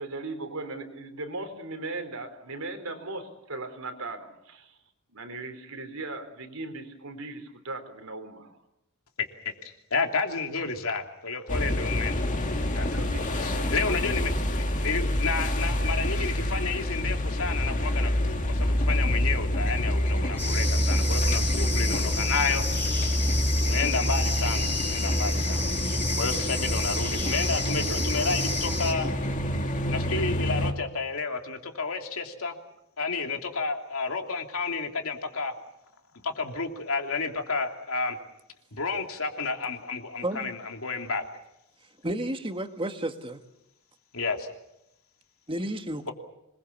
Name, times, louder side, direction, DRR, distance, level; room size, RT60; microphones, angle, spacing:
voice 1, 0.0-4.8 5.1-8.6 12.7-13.8, right 2 dB, 85° right, 3.9 m, -38 dB
voice 2, 9.2-12.3 12.7-22.6 23.6-29.1 29.9-32.6 33.0-35.5 36.2-38.2 38.7-41.2 44.1-44.5, left 4 dB, 75° left, 3.0 m, -31 dB
sound 1, 11.5-30.7, equal, 35° left, 2.3 m, -27 dB
sound 2, 20.4-28.9, left 3 dB, 10° left, 4.5 m, -32 dB
voice 3, 42.0-43.4 45.5-46.1, right 1 dB, 25° right, 1.6 m, -31 dB
26.0 x 21.5 x 7.2 m
head